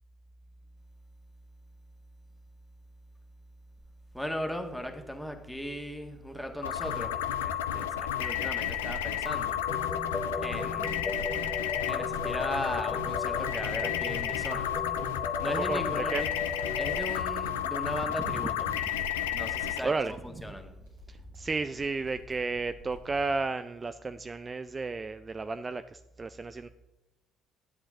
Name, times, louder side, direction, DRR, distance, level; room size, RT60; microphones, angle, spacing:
voice 1, 4.1-9.7 10.4-11.2 11.9-14.7 15.4-16.2 16.8-18.7 19.3-19.9 20.2-20.7, equal, 5° left, 4 dB, 1.6 m, -37 dB
sound 1, 6.6-19.8, left 10 dB, 85° left, 0.5 m, -32 dB
sound 2, 9.7-17.1, left 4 dB, 40° left, 1.1 m, -37 dB
voice 2, 15.4-16.2 18.3-18.8 19.8-20.6 21.1-26.7, right 3 dB, 30° right, 10 dB, 0.4 m, -33 dB
sound 3, 19.3-23.3, equal, 90° right, 2.9 m, -51 dB
10.5 x 7.7 x 3.7 m, 1.0 s
hypercardioid pair, 50°, 0 cm